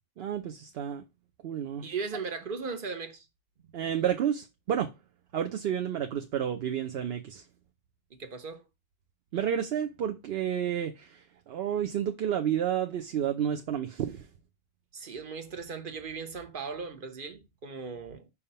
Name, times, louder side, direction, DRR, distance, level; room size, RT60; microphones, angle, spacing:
voice 1, 0.2-1.0 1.4-1.8 3.7-4.9 5.3-7.4 9.3-14.3, right 9 dB, 70° right, 0.9 m, -30 dB
voice 2, 1.8-3.3 8.1-8.6 14.9-18.3, right 5 dB, 55° right, 1.2 m, -38 dB
5.6 x 3.5 x 5.5 m
omnidirectional pair, 1.1 m